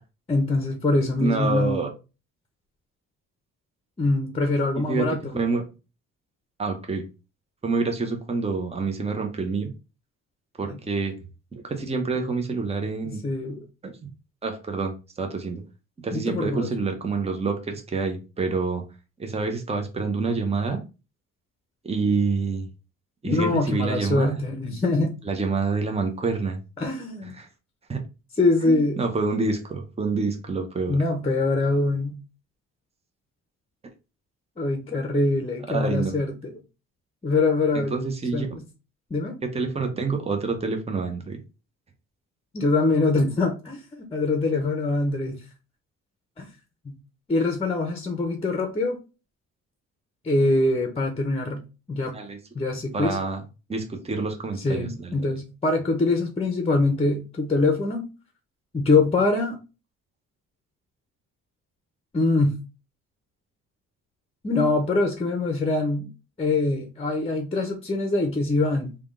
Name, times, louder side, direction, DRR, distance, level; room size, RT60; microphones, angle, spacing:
voice 1, 0.3-1.8 4.0-5.4 10.6-10.8 13.0-13.7 16.1-16.7 23.2-25.1 26.8-27.4 28.4-29.0 30.9-32.2 34.6-36.5 37.2-38.0 38.3-38.6 39.1-39.4 42.5-45.4 46.4-46.5 46.8-46.9 47.3-49.0 50.2-51.6 51.9-52.1 52.5-53.2 54.6-58.0 58.7-59.6 62.1-62.6 64.4-66.1 66.4-69.0, left 2 dB, 20° left, 0.8 m, -24 dB
voice 2, 1.2-1.9 4.9-5.7 6.6-7.0 7.6-9.7 10.6-11.1 11.5-13.2 13.8-14.1 14.4-15.6 16.0-18.8 19.2-20.8 21.8-22.7 23.2-24.4 25.2-26.6 27.2-27.5 27.9-28.0 28.6-31.0 35.7-36.2 37.7-38.5 39.4-41.4 52.1-52.4 52.9-53.4 53.7-55.2, right 4 dB, 20° right, 0.9 m, -27 dB
3.5 x 2.4 x 3.6 m
cardioid pair, 90°, 30 cm